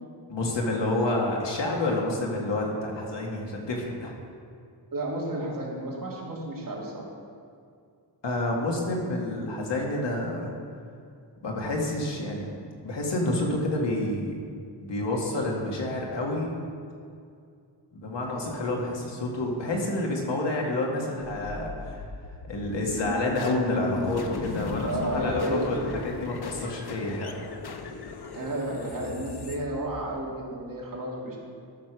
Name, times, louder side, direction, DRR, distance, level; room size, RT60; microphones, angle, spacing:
voice 1, 0.3-4.1 8.2-10.5 11.4-12.5 12.8-14.4 14.8-16.5 17.9-22.0 22.5-27.3, left 2 dB, 80° left, -1 dB, 2.1 m, -29 dB
voice 2, 4.9-7.1 24.9-25.7 28.3-31.4, right 1 dB, 50° right, -4 dB, 2.6 m, -32 dB
sound 1, 21.2-30.3, left 5 dB, 65° left, 0.9 m, -37 dB
13.0 x 6.6 x 6.1 m, 2.3 s
wide cardioid pair, 145°, 43 cm